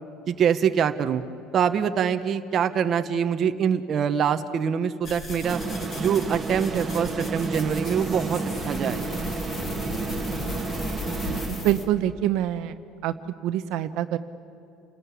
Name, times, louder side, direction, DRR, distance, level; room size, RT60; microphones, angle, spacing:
voice 1, 0.3-1.2 1.5-5.6 6.0-9.0, right 7 dB, 30° right, 7 dB, 1.0 m, -24 dB
sound 1, 5.0-11.8, left 2 dB, 25° left, 2.5 m, -36 dB
sound 2, 5.4-12.0, right 4 dB, 15° right, 1.6 m, -31 dB
voice 2, 11.5-12.7 13.0-13.1 13.4-14.2, right 13 dB, 55° right, 9 dB, 0.9 m, -25 dB
29.5 x 19.5 x 8.4 m, 2.7 s
cardioid pair, 165°, 0 cm